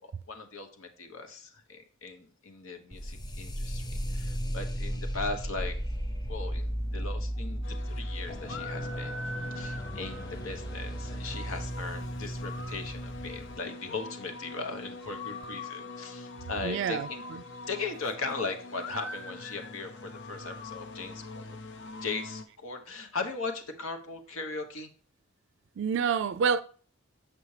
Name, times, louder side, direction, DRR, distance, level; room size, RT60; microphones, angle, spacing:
voice 1, 0.0-5.7 6.3-9.2 9.5-17.2 17.7-21.5 22.0-24.9, left 4 dB, 85° left, 1.1 m, -38 dB
sound 1, 2.9-13.6, equal, 20° left, 0.5 m, -35 dB
sound 2, 7.6-22.4, left 2 dB, 65° left, 0.8 m, -43 dB
voice 2, 16.6-17.4 25.8-26.6, right 6 dB, 60° right, 0.3 m, -28 dB
7.1 x 5.9 x 3.2 m
head